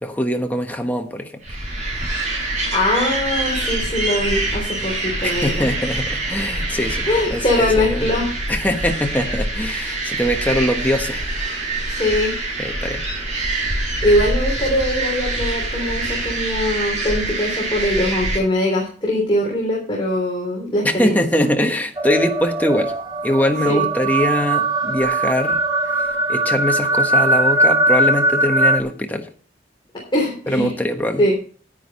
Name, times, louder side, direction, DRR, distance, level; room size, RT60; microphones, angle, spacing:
voice 1, 0.0-1.4 5.2-8.1 8.5-11.3 12.6-13.0 20.8-22.9 23.2-25.6 25.9-29.3 30.5-31.2, left 1 dB, 10° left, 4 dB, 1.2 m, -22 dB
sound 1, 1.4-18.4, right 2 dB, 40° right, 6.5 m, -25 dB
voice 2, 2.7-5.7 7.1-8.3 11.9-12.3 14.0-21.2 23.6-23.8 30.1-30.7 31.2-31.3, left 1 dB, 25° left, -3 dB, 3.3 m, -21 dB
sound 2, 22.0-28.8, right 2 dB, 20° right, 1.0 m, -19 dB
10.5 x 10.0 x 4.2 m, 0.43 s
head